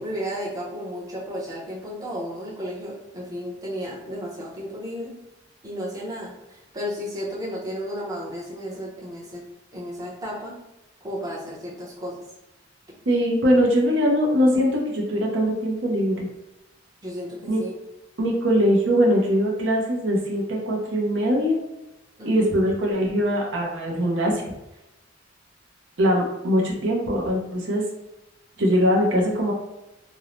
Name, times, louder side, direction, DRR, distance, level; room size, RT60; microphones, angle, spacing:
voice 1, 0.0-5.1 5.6-9.4 9.7-10.5 11.0-12.2 17.0-17.7 22.2-22.5, equal, 20° right, -6 dB, 0.6 m, -33 dB
voice 2, 13.1-16.3 17.5-17.6 18.2-21.6 22.2-24.5 26.0-27.8 28.6-29.5, equal, 70° right, -2 dB, 0.6 m, -21 dB
2.6 x 2.0 x 3.0 m, 0.94 s
head